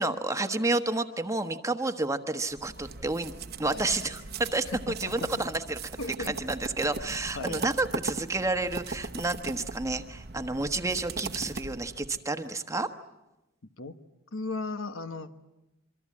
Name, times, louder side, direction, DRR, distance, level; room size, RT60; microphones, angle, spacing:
voice 1, 0.0-3.3 3.6-5.8 6.3-12.9, right 2 dB, 15° right, 7 dB, 1.1 m, -30 dB
sound 1, 2.5-12.2, right 4 dB, 50° right, 1.0 m, -39 dB
voice 2, 4.6-5.5 6.0-6.3 7.3-7.6 13.8-14.0 14.3-15.4, left 3 dB, 80° left, 9 dB, 1.4 m, -36 dB
26.5 x 24.5 x 8.6 m, 0.95 s
head